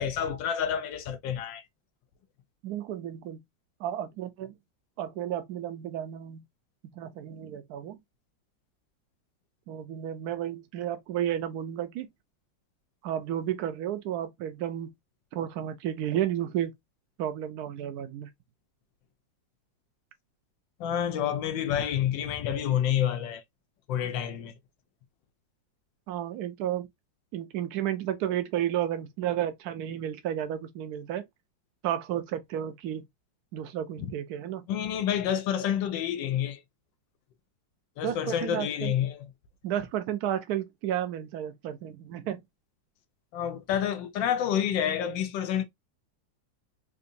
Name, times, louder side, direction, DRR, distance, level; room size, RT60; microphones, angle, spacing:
voice 1, 0.0-1.6 20.8-23.4 23.9-24.5 34.0-34.1 34.7-36.6 38.0-39.3 43.3-45.6, left 9 dB, 80° left, 1.3 m, -28 dB
voice 2, 2.6-3.4 3.8-4.5 5.0-6.4 7.0-8.0 9.7-12.1 13.0-14.9 15.3-16.7 17.2-18.3 26.1-26.9 27.3-31.2 31.8-33.0 33.5-34.7 38.0-38.9 39.6-42.4, right 11 dB, 65° right, 1.0 m, -32 dB
3.9 x 2.6 x 2.6 m
omnidirectional pair, 2.0 m